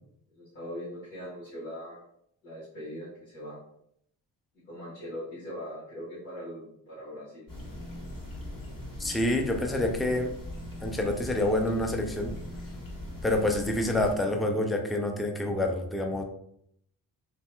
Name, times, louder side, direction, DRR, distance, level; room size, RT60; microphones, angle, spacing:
voice 1, 0.3-2.0 2.4-3.6 4.7-7.4, equal, 90° left, -12 dB, 1.5 m, -41 dB
sound 1, 7.5-14.2, left 1 dB, 45° left, 1.4 m, -40 dB
voice 2, 9.0-10.3 10.8-12.3 13.2-16.2, left 1 dB, ahead, 3 dB, 0.3 m, -27 dB
3.0 x 2.7 x 2.2 m, 0.72 s
supercardioid pair, 55°, 47 cm